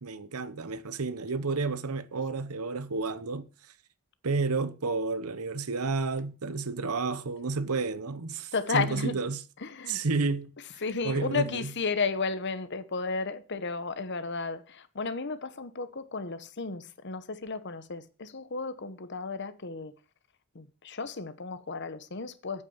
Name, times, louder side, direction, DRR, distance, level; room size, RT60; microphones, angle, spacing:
voice 1, 0.0-3.5 4.2-9.4 9.9-10.5 11.0-11.7, right 4 dB, 85° right, 0.9 m, -31 dB
voice 2, 8.5-9.2 9.6-10.0 10.8-19.9 20.5-22.6, left 4 dB, 50° left, 1.0 m, -33 dB
8.4 x 8.1 x 7.2 m
head